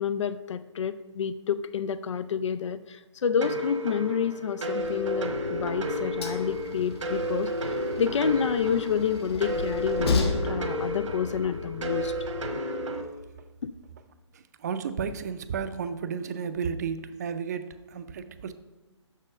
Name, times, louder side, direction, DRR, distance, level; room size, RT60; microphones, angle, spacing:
voice 1, 0.0-12.1 13.6-13.7, left 7 dB, 75° left, 13 dB, 0.5 m, -29 dB
sound 1, 3.4-13.0, equal, 85° right, 1.3 m, -32 dB
Train, 4.8-12.6, left 3 dB, 55° left, 1.2 m, -35 dB
voice 2, 14.3-18.5, right 6 dB, 35° right, 11 dB, 0.5 m, -33 dB
6.5 x 6.2 x 5.4 m, 1.1 s
hypercardioid pair, 160°, 16 cm